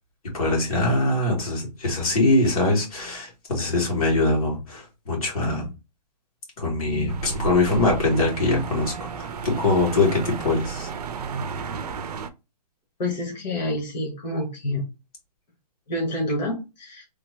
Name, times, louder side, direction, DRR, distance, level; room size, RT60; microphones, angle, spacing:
voice 1, 0.3-5.7 6.6-10.9, left 2 dB, 60° left, 2.0 m, -23 dB
sound 1, 7.1-12.3, right 6 dB, 70° right, 0.5 m, -33 dB
voice 2, 13.0-14.8 15.9-17.0, left 1 dB, 90° left, 1.4 m, -28 dB
3.3 x 2.0 x 3.2 m
hypercardioid pair, 170°, 21 cm